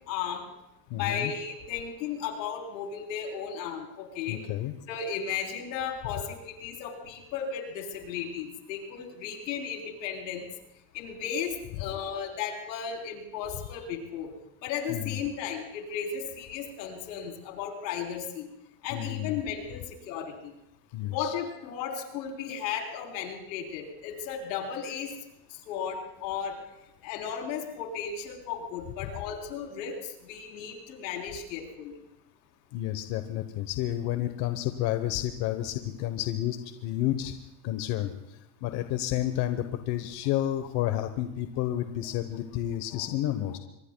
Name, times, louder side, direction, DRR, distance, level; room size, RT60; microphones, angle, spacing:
voice 1, 0.1-0.4 0.9-4.4 4.9-10.5 10.9-14.3 14.6-18.5 18.8-20.5 21.1-25.1 25.7-26.6 27.0-30.0 30.2-31.9 42.9-43.0, left 7 dB, 85° left, 2 dB, 3.8 m, -35 dB
voice 2, 0.9-1.3 4.3-4.7 14.9-15.2 18.9-19.4 20.9-21.3 32.7-37.3 37.6-43.6, left 13 dB, 50° left, 8 dB, 1.1 m, -30 dB
24.5 x 22.5 x 2.3 m, 0.85 s
supercardioid pair, 130°, 50 cm